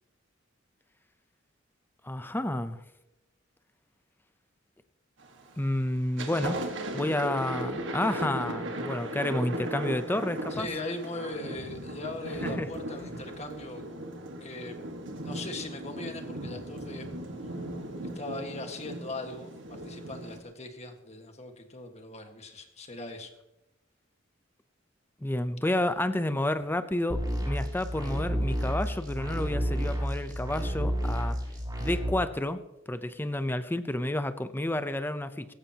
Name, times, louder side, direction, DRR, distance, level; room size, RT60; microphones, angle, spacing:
voice 1, 2.0-2.8 5.6-6.6 6.9-10.7 12.4-12.7 25.2-31.4 31.8-32.6 32.9-35.5, left 1 dB, 10° left, 11 dB, 0.7 m, -30 dB
Thunder, 5.2-5.6 6.0-20.4, right 1 dB, 70° right, 1.7 m, -37 dB
voice 2, 10.5-13.9 14.4-14.8 15.2-17.1 18.1-23.3, left 2 dB, 35° left, 5 dB, 1.7 m, -39 dB
sound 1, 27.1-32.1, equal, 20° right, 3.6 m, -31 dB
17.5 x 15.5 x 2.9 m, 0.90 s
head